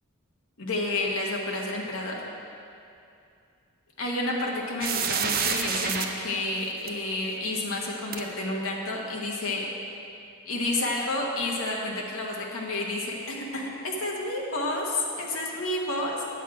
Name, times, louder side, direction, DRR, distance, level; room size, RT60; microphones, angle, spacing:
voice 1, 0.6-2.2 4.0-9.7 10.4-16.2, left 2 dB, 65° left, -2 dB, 1.2 m, -30 dB
sound 1, 4.8-6.0 6.9-7.0 8.1-8.2, right 6 dB, 40° right, 0.5 m, -27 dB
8.3 x 7.5 x 4.8 m, 2.5 s
head